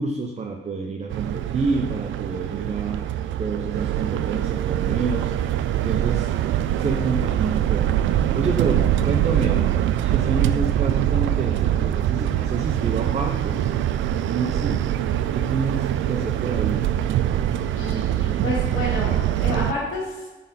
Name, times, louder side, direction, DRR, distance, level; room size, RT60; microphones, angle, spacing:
voice 1, 0.0-6.4 6.8-9.7 10.0-13.7 14.2-14.9 15.3-16.9, right 4 dB, 35° right, 2 dB, 0.6 m, -28 dB
sound 1, 1.1-19.7, right 11 dB, 75° right, 0.4 m, -23 dB
voice 2, 17.7-20.3, left 2 dB, 90° left, -9 dB, 2.1 m, -30 dB
10.0 x 4.1 x 4.2 m, 1.2 s
cardioid pair, 90°, 20 cm